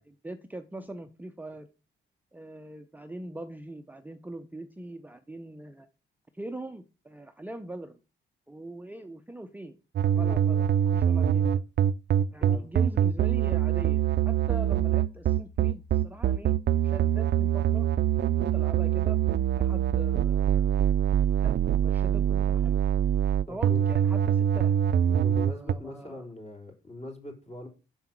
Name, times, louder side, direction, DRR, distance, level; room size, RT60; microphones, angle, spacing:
voice 1, 0.1-1.7 2.3-5.9 6.3-8.0 8.5-9.8 10.0-11.6 12.3-16.6 16.8-17.9 18.4-19.2 19.5-20.8 21.4-21.6 21.8-22.8 23.5-25.2 25.5-26.2, right 1 dB, 10° right, 8 dB, 0.6 m, -42 dB
sound 1, 10.0-25.7, right 10 dB, 55° right, 0.5 m, -24 dB
voice 2, 23.5-23.8 25.1-27.7, left 1 dB, 30° left, 3 dB, 3.8 m, -42 dB
6.8 x 5.6 x 7.4 m, 0.32 s
cardioid pair, 105°, 21 cm